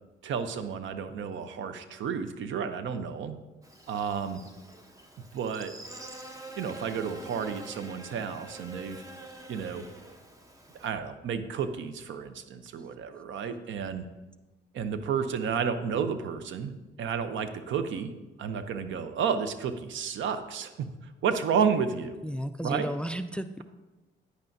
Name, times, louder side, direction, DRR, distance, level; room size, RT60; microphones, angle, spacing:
voice 1, 0.2-3.4 3.9-4.4 5.3-5.7 6.6-9.0 9.5-9.8 10.8-14.0 14.7-16.7 17.0-18.1 18.4-20.9 21.2-22.2 22.6-22.9, right 6 dB, 75° right, 10 dB, 0.7 m, -31 dB
Buzz, 3.6-10.9, right 2 dB, 15° right, 0.9 m, -46 dB
voice 2, 22.2-23.6, equal, 5° left, 11 dB, 0.3 m, -33 dB
9.6 x 9.1 x 2.7 m, 1.1 s
cardioid pair, 90°, 20 cm